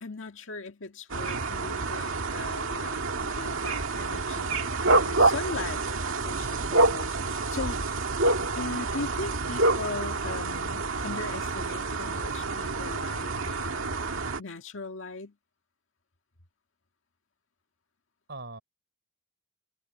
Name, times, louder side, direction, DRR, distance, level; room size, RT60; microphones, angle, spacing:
voice 1, 0.0-5.8 6.2-7.8 8.6-14.0 14.4-15.3, left 3 dB, 75° left, 1.9 m, -39 dB
sound 1, 1.1-14.4, right 3 dB, 90° right, 1.9 m, -28 dB
voice 2, 6.4-6.7 18.3-18.6, right 2 dB, 60° right, 4.9 m, -42 dB
head